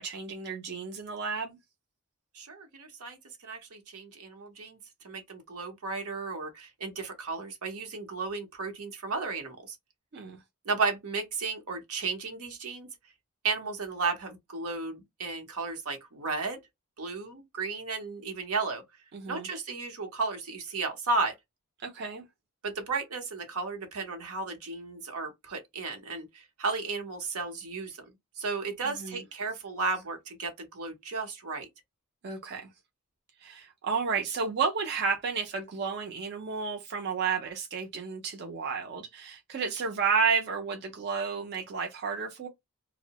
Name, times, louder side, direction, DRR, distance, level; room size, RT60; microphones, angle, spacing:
voice 1, 0.0-1.6 10.1-10.4 19.1-19.5 21.8-22.2 28.8-29.2 32.2-32.7 33.4-42.5, right 5 dB, 50° right, 0.5 m, -31 dB
voice 2, 2.3-4.8 5.0-9.8 10.6-12.9 13.4-16.6 17.0-18.8 19.3-21.3 22.6-28.0 28.4-31.7, right 4 dB, 80° right, 0.8 m, -34 dB
2.6 x 2.0 x 2.8 m
head